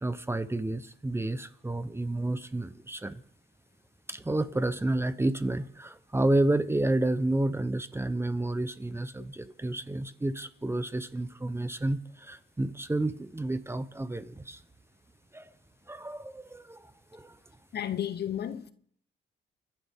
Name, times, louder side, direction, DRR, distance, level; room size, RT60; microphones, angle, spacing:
voice 1, 0.0-3.2 4.1-14.6 15.3-15.5 15.9-16.9 17.1-17.3, right 2 dB, 10° right, 0.8 m, -30 dB
voice 2, 17.7-18.7, left 10 dB, 55° left, 1.0 m, -32 dB
29.0 x 11.5 x 3.6 m
cardioid pair, 90°, 20 cm